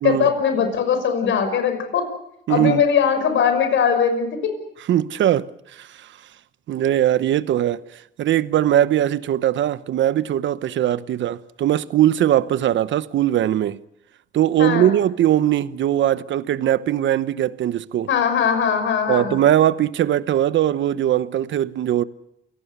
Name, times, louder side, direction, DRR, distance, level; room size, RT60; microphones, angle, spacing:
voice 1, 0.0-2.1 2.5-4.4 14.6-14.9 18.1-19.3, left 7 dB, 75° left, 5.9 m, -20 dB
voice 2, 2.5-2.8 4.9-6.1 6.7-7.8 8.2-13.8 14.3-18.1 19.1-22.0, right 11 dB, 70° right, 1.1 m, -20 dB
28.5 x 18.0 x 8.2 m
cardioid pair, 90°, 20 cm